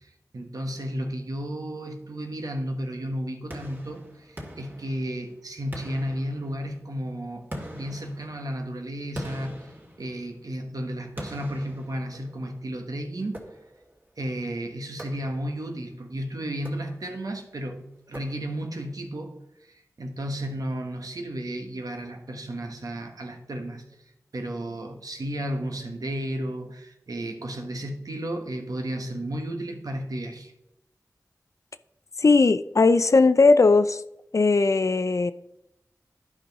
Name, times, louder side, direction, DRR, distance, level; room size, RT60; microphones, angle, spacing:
voice 1, 0.3-7.5 7.7-9.7 10.0-13.4 14.2-19.4 20.0-23.8 24.3-30.5, right 1 dB, 80° right, 3 dB, 1.3 m, -33 dB
sound 1, 3.5-5.3 5.7-6.9 7.5-10.5 11.2-12.6 13.3-14.0 15.0-15.7 16.5-17.3 18.1-18.8, equal, 30° right, 2.1 m, -42 dB
voice 2, 32.2-34.0 34.3-35.3, left 3 dB, 60° left, 13 dB, 0.5 m, -18 dB
11.5 x 5.1 x 4.0 m, 0.83 s
wide cardioid pair, 45°, 6 cm